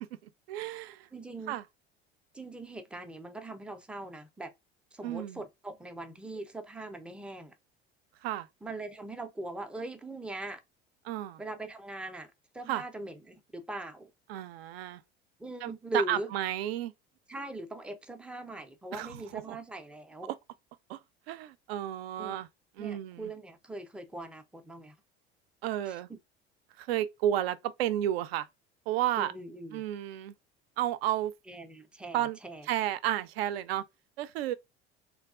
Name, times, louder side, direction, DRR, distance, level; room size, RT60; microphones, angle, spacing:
voice 1, 0.5-1.1 1.5-1.6 5.0-5.4 8.2-8.5 11.0-11.4 12.7-12.8 14.3-15.0 15.6-16.9 18.9-19.6 20.9-21.0 21.3-22.5 22.8-23.3 25.6-26.1 26.8-28.5 28.9-29.3 29.7-30.3 30.8-31.3 32.1-32.4 32.7-33.8 34.2-34.5, right 12 dB, 65° right, 0.5 m, -32 dB
voice 2, 1.1-1.6 2.3-4.5 4.9-7.6 8.6-10.6 11.4-14.1 15.4-16.3 17.3-20.3 22.2-22.4 22.8-25.0 25.9-26.2 29.2-29.8 31.5-32.7, right 2 dB, 5° right, 0.4 m, -41 dB
3.3 x 2.3 x 2.3 m
figure-of-eight pair, 70°, 32 cm